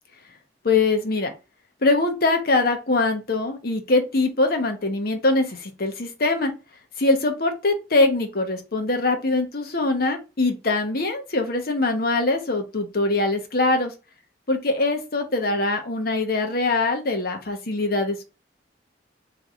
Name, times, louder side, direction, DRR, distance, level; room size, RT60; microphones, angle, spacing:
voice 1, 0.6-1.3 1.8-6.5 7.0-13.9 14.5-18.2, left 2 dB, 55° left, 0.9 m, -23 dB
3.7 x 3.3 x 4.2 m
head